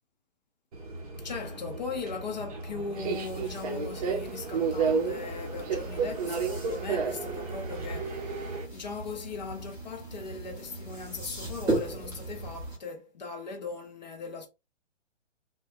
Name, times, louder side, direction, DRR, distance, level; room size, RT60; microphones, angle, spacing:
Subway metro underground, 0.7-8.7, right 5 dB, 30° right, 0.7 m, -32 dB
voice 1, 1.2-14.5, left 4 dB, 35° left, 0.6 m, -39 dB
sound 1, 2.9-12.8, right 2 dB, 5° right, 1.0 m, -38 dB
3.1 x 2.2 x 2.8 m
figure-of-eight pair, 135°, 36 cm